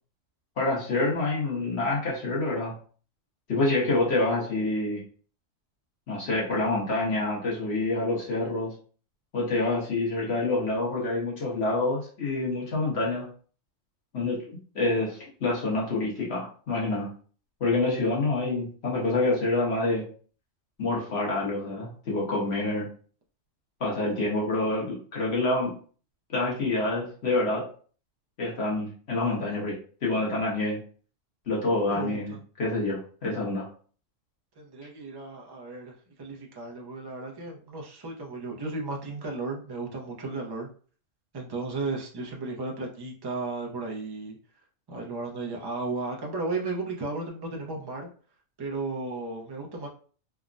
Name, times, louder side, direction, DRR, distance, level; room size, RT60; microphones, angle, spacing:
voice 1, 0.6-2.7 3.5-5.0 6.1-8.7 9.3-13.3 14.1-14.4 14.7-17.1 17.6-20.0 20.8-22.9 23.8-25.7 26.3-27.6 28.4-30.8 31.5-33.7, left 2 dB, 60° left, -4 dB, 1.3 m, -27 dB
voice 2, 31.9-32.4 34.6-35.9 36.2-40.7 41.3-44.3 44.9-48.1 48.6-49.9, right 3 dB, 40° right, -1 dB, 0.3 m, -34 dB
3.4 x 2.0 x 2.5 m, 0.42 s
omnidirectional pair, 1.3 m